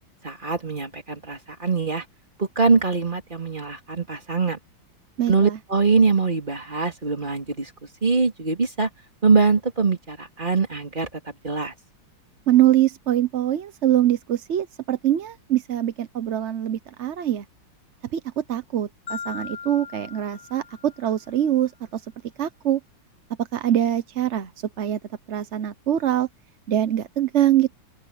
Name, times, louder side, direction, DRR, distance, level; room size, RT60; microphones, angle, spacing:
voice 1, 0.2-2.0 2.4-4.6 5.3-7.7 8.0-8.9 9.2-11.7, right 4 dB, 25° right, 3.4 m, -23 dB
voice 2, 5.2-5.6 12.5-17.4 18.1-22.0 22.4-22.8 23.4-24.5 24.8-25.0 25.3-26.3 26.7-27.7, right 12 dB, 55° right, 0.8 m, -23 dB
Marimba xylophone, 19.1-21.3, left 6 dB, 55° left, 3.8 m, -38 dB
open air
omnidirectional pair, 2.1 m